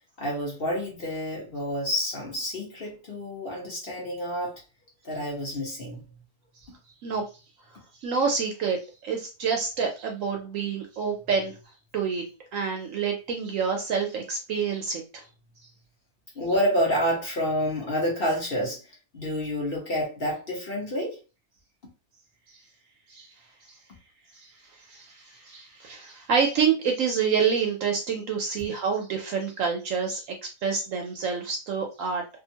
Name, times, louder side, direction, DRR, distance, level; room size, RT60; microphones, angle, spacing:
voice 1, 0.2-4.6 5.0-6.0 16.3-18.8 19.1-21.2, equal, 40° left, 1.0 m, -28 dB
voice 2, 8.0-11.5 11.9-12.2 12.5-15.2 23.1-23.3 24.9-30.3 30.6-32.2, right 6 dB, 70° right, 0.8 m, -27 dB
2.8 x 2.4 x 2.7 m
omnidirectional pair, 1.7 m